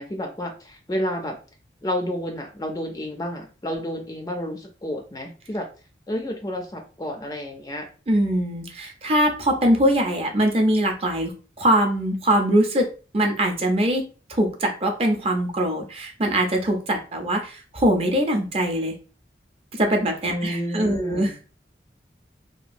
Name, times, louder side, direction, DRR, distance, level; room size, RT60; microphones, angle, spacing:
voice 1, 0.0-1.4 1.8-5.7 6.1-7.9 20.3-21.4, equal, 20° left, 3 dB, 0.3 m, -30 dB
voice 2, 8.1-11.3 11.6-12.9 13.1-14.0 14.3-18.9 19.7-21.3, right 1 dB, 35° right, 3 dB, 0.5 m, -22 dB
2.8 x 2.3 x 2.5 m, 0.35 s
head